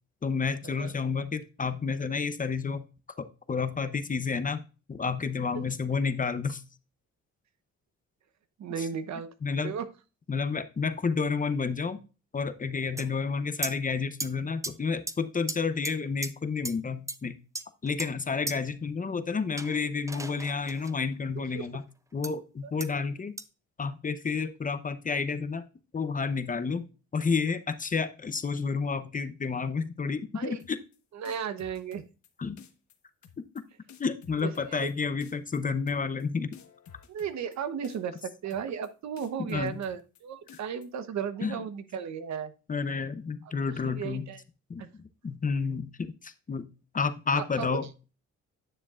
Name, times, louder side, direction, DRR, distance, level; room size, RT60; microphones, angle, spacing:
voice 1, 0.2-2.8 3.2-4.6 4.9-6.6 8.8-8.9 9.4-9.7 10.3-12.0 12.3-17.4 17.8-21.8 22.1-23.3 23.8-25.6 25.9-26.8 27.1-30.8 32.4-32.6 34.0-36.5 39.4-39.8 41.4-41.6 42.7-44.3 44.7-46.7 46.9-47.8, left 5 dB, 25° left, 11 dB, 0.7 m, -30 dB
voice 2, 8.6-9.3 9.6-9.9 21.4-21.7 30.3-30.6 31.1-32.0 34.4-34.9 37.1-42.5 43.8-44.4 44.8-44.9 47.3-47.8, right 7 dB, 65° right, 11 dB, 1.0 m, -35 dB
sound 1, 13.0-13.1 13.6-13.7 14.2-14.3 14.6-14.7 15.1-15.2 15.5-15.6 15.8-15.9 16.2-16.3 16.6-16.7 17.1-17.2 17.5-18.1 18.5-18.6 19.6-20.9 22.2-22.3 22.8-22.9 23.4-23.5, right 2 dB, 10° right, 0.6 m, -35 dB
sound 2, 30.6-31.0 31.3-32.3 32.6-33.0 33.2-33.6 33.9-34.9 35.2-35.6 35.9-36.2 36.5-37.6 37.8-38.2 38.5-38.9 39.2-40.2 40.5-40.9, left 8 dB, 70° left, 1.2 m, -52 dB
10.0 x 6.7 x 2.4 m, 0.32 s
cardioid pair, 90°, 30 cm